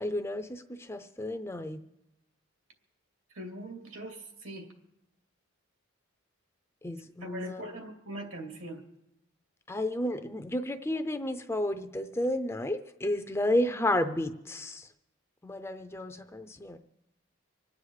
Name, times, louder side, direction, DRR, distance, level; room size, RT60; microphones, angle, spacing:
voice 1, 0.0-1.8 6.8-7.6 9.7-14.9 15.4-16.8, left 1 dB, 10° left, 8 dB, 0.5 m, -32 dB
voice 2, 3.3-4.7 7.2-8.8, right 1 dB, 70° right, 3 dB, 2.6 m, -41 dB
25.5 x 9.4 x 4.8 m, 0.86 s
head